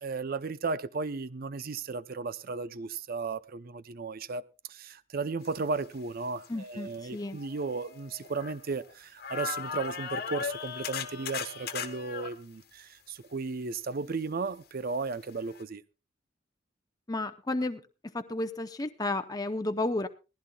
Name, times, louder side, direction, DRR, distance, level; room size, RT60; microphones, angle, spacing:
voice 1, 0.0-4.4 4.7-15.8, right 4 dB, 50° right, 0.6 m, -35 dB
sound 1, 6.4-6.5 7.2-8.9 9.2-12.3 15.1-15.2 15.6-15.7, left 7 dB, 55° left, 1.3 m, -37 dB
voice 2, 6.5-7.4 17.1-17.8 18.1-20.1, left 2 dB, 20° left, 0.6 m, -32 dB
19.5 x 15.5 x 2.3 m
head